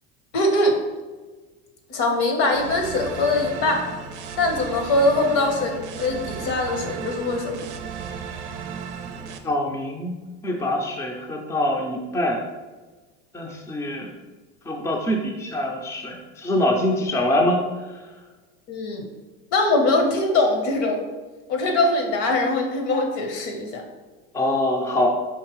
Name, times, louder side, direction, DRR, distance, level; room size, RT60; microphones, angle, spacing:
voice 1, 0.3-0.8 1.9-3.8 4.4-7.6 18.7-19.0 19.5-21.0 21.5-23.8, left 2 dB, 65° left, 3 dB, 1.0 m, -22 dB
sound 1, 2.5-9.4, right 7 dB, 90° right, 0.5 m, -35 dB
voice 2, 9.4-10.1 10.4-12.4 13.3-14.1 14.7-17.6 24.3-25.1, left 1 dB, 10° left, 1 dB, 0.5 m, -24 dB
4.7 x 2.9 x 3.0 m, 1.3 s
supercardioid pair, 95°, 34 cm